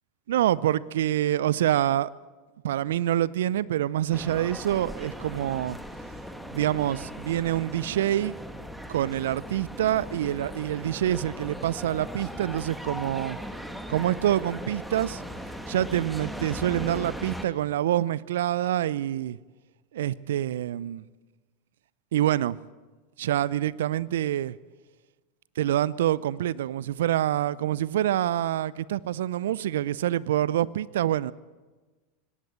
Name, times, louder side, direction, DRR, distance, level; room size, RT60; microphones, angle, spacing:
voice 1, 0.3-2.1 2.6-5.8 6.5-8.3 8.9-13.4 13.9-15.2 15.7-19.4 19.9-21.0 22.1-22.6 23.2-24.6 25.6-31.3, right 12 dB, 70° right, 0.5 m, -26 dB
sound 1, 4.1-17.5, equal, ahead, 1.8 m, -38 dB
20.0 x 17.0 x 8.5 m
hypercardioid pair, 90°, 0 cm